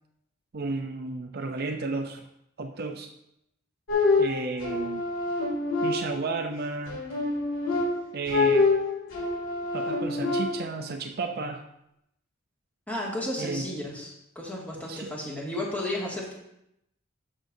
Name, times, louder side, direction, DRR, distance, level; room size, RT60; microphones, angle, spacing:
voice 1, 0.5-2.3 2.6-3.1 4.2-5.0 5.8-7.0 8.1-8.7 9.7-11.6 13.4-13.7 14.9-15.1, right 3 dB, 50° right, 5 dB, 0.5 m, -32 dB
sound 1, 3.9-6.4 6.9-10.8, left 3 dB, 75° left, 2.3 m, -26 dB
voice 2, 12.9-16.3, left 1 dB, 10° left, -5 dB, 2.1 m, -33 dB
13.0 x 6.1 x 2.7 m, 0.81 s
head